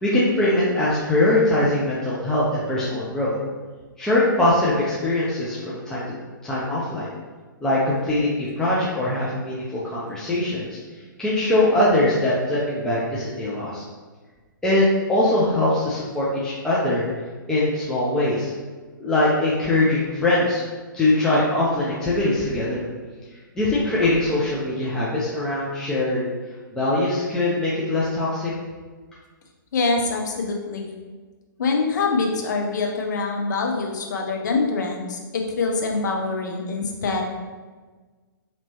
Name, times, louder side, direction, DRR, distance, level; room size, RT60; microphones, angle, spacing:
voice 1, 0.0-3.4 4.0-6.1 6.4-7.1 7.6-10.8 11.2-13.8 14.6-17.0 17.5-18.5 19.0-20.6 20.9-22.8 23.6-26.3 26.7-28.5, left 1 dB, 5° left, -8 dB, 0.6 m, -22 dB
voice 2, 29.7-30.9 31.6-37.2, left 3 dB, 60° left, 1 dB, 0.7 m, -24 dB
4.2 x 3.0 x 2.9 m, 1.4 s
figure-of-eight pair, 125°, 11 cm